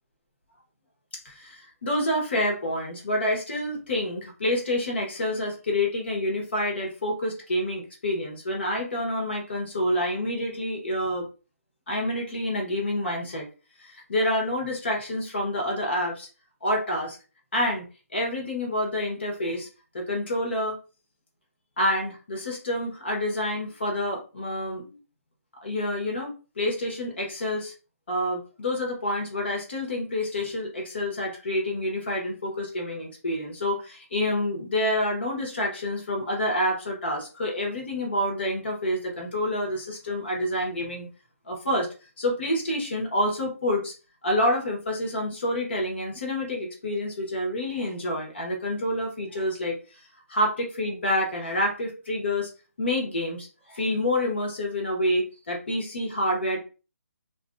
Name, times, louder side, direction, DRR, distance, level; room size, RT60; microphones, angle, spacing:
voice 1, 1.2-11.3 11.9-13.5 13.8-16.3 16.6-17.2 17.5-17.9 18.1-19.7 19.9-20.8 21.8-25.0 25.6-27.7 28.1-41.1 41.5-41.9 42.2-43.9 44.2-49.8 50.3-52.5 52.8-56.6, left 1 dB, 45° left, 0 dB, 1.2 m, -28 dB
2.8 x 2.6 x 2.6 m, 0.34 s
hypercardioid pair, 180°, 8 cm